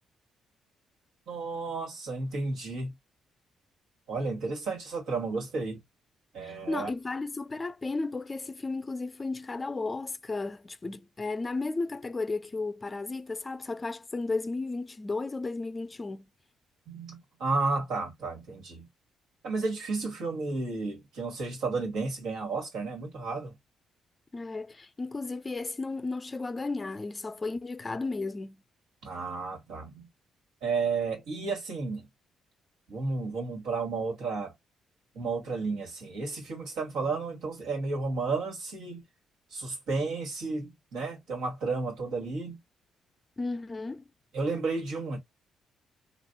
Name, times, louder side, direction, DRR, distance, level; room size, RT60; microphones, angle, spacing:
voice 1, 1.3-2.9 4.1-5.8 6.3-6.9 16.9-18.9 19.4-23.6 29.0-30.1 30.6-32.1 32.9-34.5 35.2-39.0 39.5-42.6 44.3-45.2, right 3 dB, 85° right, 1.7 m, -32 dB
voice 2, 6.4-16.3 24.3-28.6 43.4-44.0, left 3 dB, 25° left, 0.4 m, -34 dB
3.3 x 2.4 x 2.6 m
cardioid pair, 90°, 0 cm